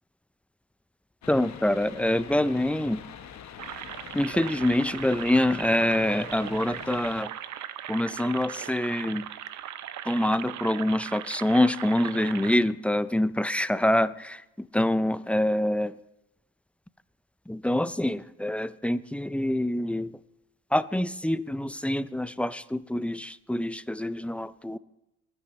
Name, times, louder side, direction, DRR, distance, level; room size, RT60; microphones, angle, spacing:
sound 1, 1.2-7.2, left 8 dB, 65° left, 1.1 m, -44 dB
voice 1, 1.3-3.0 4.1-7.3 7.9-9.3 10.1-15.9 17.5-20.1 20.7-24.8, left 1 dB, 5° left, 15 dB, 0.5 m, -26 dB
sound 2, 3.6-12.6, right 11 dB, 70° right, 0.7 m, -39 dB
26.5 x 9.8 x 3.2 m, 0.88 s
cardioid pair, 90°, 30 cm